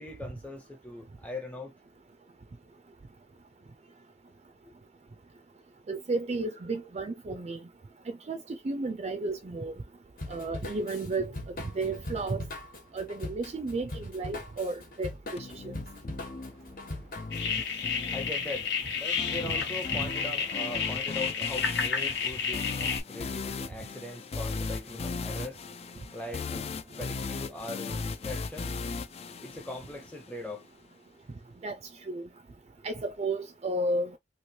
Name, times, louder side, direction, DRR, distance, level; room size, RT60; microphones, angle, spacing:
voice 1, 0.0-1.7 16.4-29.0 29.4-30.7, left 1 dB, 10° left, 0.7 m, -41 dB
voice 2, 5.9-7.6 8.3-8.4 8.6-9.7 10.3-11.3 11.7-12.4 12.9-15.7 31.6-31.8 32.1-32.2 32.8-34.1, right 2 dB, 40° right, 0.4 m, -32 dB
Drum kit / Drum, 10.2-17.5, left 1 dB, 55° left, 1.3 m, -41 dB
sound 1, 15.4-30.4, left 4 dB, 35° left, 0.4 m, -38 dB
sound 2, 17.3-23.0, left 6 dB, 85° left, 1.2 m, -31 dB
3.1 x 2.9 x 2.7 m
head